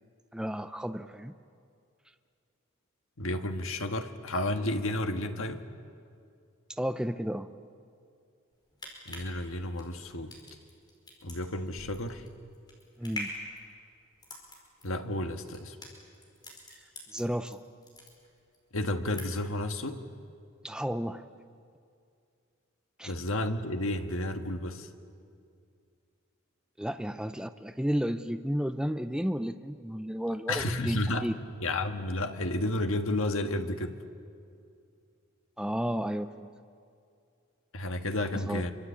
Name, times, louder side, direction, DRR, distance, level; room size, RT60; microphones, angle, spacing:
voice 1, 0.3-1.3 6.8-7.5 13.0-13.3 17.1-17.6 20.6-21.2 23.0-23.1 26.8-31.4 35.6-36.5 38.5-38.7, equal, 5° right, 9 dB, 0.6 m, -32 dB
voice 2, 3.2-5.6 9.0-10.3 11.2-12.2 14.8-15.7 18.7-20.0 23.0-24.9 30.5-31.3 31.6-34.0 37.7-38.7, left 1 dB, 75° left, 7 dB, 1.6 m, -31 dB
sound 1, 8.5-17.5 17.8-18.6 18.9-19.6 19.9-20.0, left 1 dB, 20° left, 5.0 m, -44 dB
26.5 x 24.5 x 8.5 m, 2.4 s
head